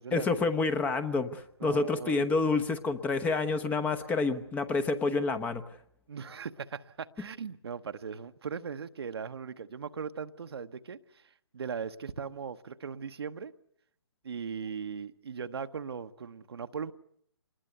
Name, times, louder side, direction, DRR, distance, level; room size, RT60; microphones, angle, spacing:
voice 1, 0.1-5.6, left 3 dB, 10° left, 11 dB, 1.0 m, -28 dB
voice 2, 1.6-2.3 6.1-13.5 14.2-16.9, right 6 dB, 60° right, 9 dB, 1.1 m, -39 dB
26.5 x 20.5 x 8.1 m, 0.67 s
figure-of-eight pair, 140°, 15 cm